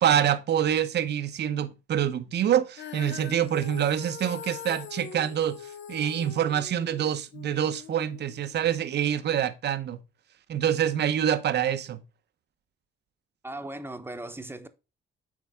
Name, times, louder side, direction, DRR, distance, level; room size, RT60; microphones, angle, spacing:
voice 1, 0.0-5.6 5.9-10.0 10.5-12.0, right 10 dB, 60° right, 0.8 m, -26 dB
Female singing, 2.8-9.0, left 8 dB, 65° left, 1.0 m, -42 dB
voice 2, 13.4-14.7, right 1 dB, 10° right, 1.0 m, -38 dB
8.4 x 4.6 x 3.6 m
cardioid pair, 90°, 20 cm